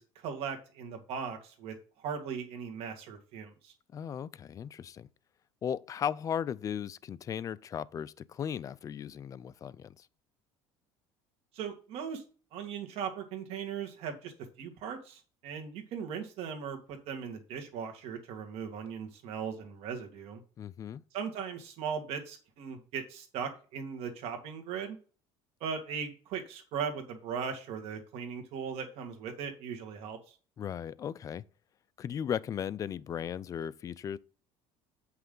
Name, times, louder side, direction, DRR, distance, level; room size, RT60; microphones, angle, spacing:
voice 1, 0.0-3.7 11.5-12.2 12.5-14.3 14.6-20.4 21.1-25.0 25.6-30.4, right 7 dB, 65° right, 1.9 m, -38 dB
voice 2, 3.9-5.1 5.6-10.1 20.6-21.0 30.6-31.4 32.0-34.2, left 8 dB, 30° left, 0.4 m, -36 dB
8.5 x 5.7 x 3.8 m
cardioid pair, 140°, 11 cm